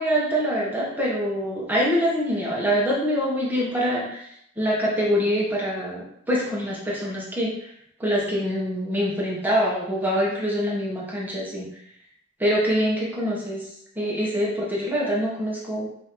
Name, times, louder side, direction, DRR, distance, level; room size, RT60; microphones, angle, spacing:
voice 1, 0.0-4.0 4.6-7.5 8.0-11.7 12.4-13.6 14.0-15.9, equal, 10° right, -5 dB, 0.9 m, -24 dB
5.3 x 2.6 x 3.0 m, 0.74 s
head